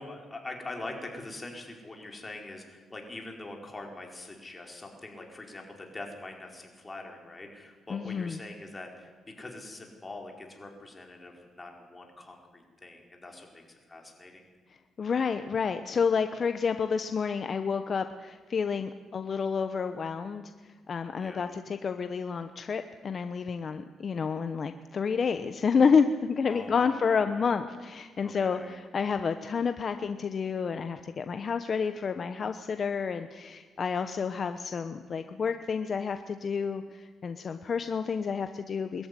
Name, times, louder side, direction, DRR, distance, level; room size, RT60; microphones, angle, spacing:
voice 1, 0.0-9.1 9.4-14.4 21.2-21.5 26.4-27.5 28.2-28.8, left 2 dB, 20° left, 2 dB, 4.8 m, -43 dB
voice 2, 7.9-8.4 15.0-39.1, left 5 dB, 45° left, 9 dB, 1.0 m, -29 dB
22.5 x 14.0 x 9.9 m, 1.5 s
cardioid pair, 90°, 0 cm